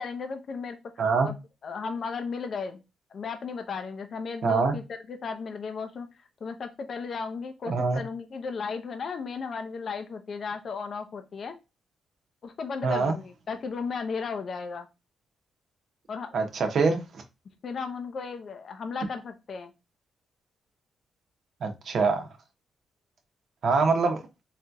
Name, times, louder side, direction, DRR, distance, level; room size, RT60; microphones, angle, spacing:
voice 1, 0.0-1.3 1.6-2.8 3.1-6.1 6.4-11.5 12.4-14.9 16.1-16.3 17.6-19.7, left 5 dB, 55° left, 0.6 m, -35 dB
voice 2, 4.4-4.7 7.7-8.0 12.8-13.2 16.3-17.2 21.6-22.3 23.6-24.2, right 4 dB, 65° right, 0.8 m, -24 dB
4.1 x 2.7 x 2.3 m
cardioid pair, 65°, 0 cm